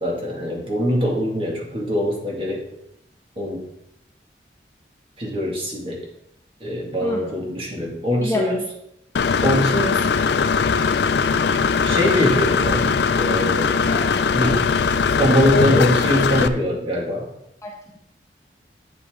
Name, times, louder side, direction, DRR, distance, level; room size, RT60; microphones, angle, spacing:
voice 1, 0.0-2.6 3.4-3.6 5.2-6.0 6.6-8.6 9.4-10.1 11.8-13.7 14.3-14.7 15.2-17.3, equal, 30° right, -2 dB, 2.1 m, -22 dB
voice 2, 7.0-7.3 8.2-8.5 13.8-14.0 17.6-18.0, left 1 dB, 15° left, -1 dB, 1.2 m, -28 dB
Engine / Mechanisms, 9.2-16.5, left 5 dB, 75° left, 0.4 m, -20 dB
8.3 x 8.0 x 3.7 m, 0.78 s
head